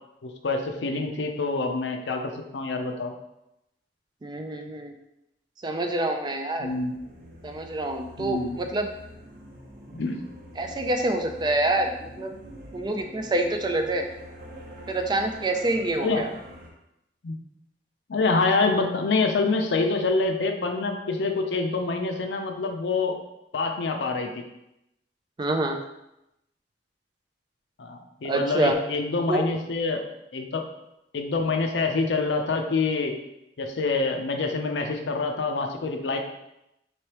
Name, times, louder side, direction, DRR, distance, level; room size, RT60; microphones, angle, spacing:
voice 1, 0.2-3.1 6.6-6.9 8.2-8.6 9.9-10.2 16.0-16.2 17.2-17.4 18.1-23.2 23.5-24.4 27.8-30.0 30.3-30.6 31.1-33.2 33.6-36.2, left 3 dB, 80° left, 4 dB, 0.5 m, -26 dB
voice 2, 4.2-4.9 5.6-6.7 7.4-8.9 10.6-12.3 12.7-14.1 14.9-16.3 25.4-25.8 28.3-28.8 29.3-29.4, right 2 dB, 25° right, 4 dB, 0.3 m, -26 dB
sound 1, 6.6-16.7, equal, 50° right, 0.8 m, -45 dB
4.4 x 3.3 x 2.9 m, 0.87 s
head